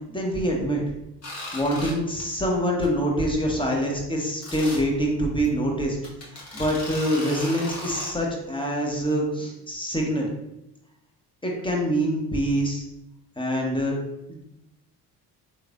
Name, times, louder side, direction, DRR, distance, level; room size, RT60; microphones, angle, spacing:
voice 1, 0.1-0.8 1.5-6.0 6.3-10.3 11.4-12.8 13.4-14.0 14.3-14.4, equal, 10° left, -1 dB, 1.0 m, -25 dB
sound 1, 1.2-1.9 2.2-2.4 2.8-2.9 3.2-3.3 4.4-4.8 5.4-5.5 6.0-8.1, left 1 dB, 35° left, 1.2 m, -36 dB
3.2 x 3.2 x 2.5 m, 0.87 s
hypercardioid pair, 50°, 47 cm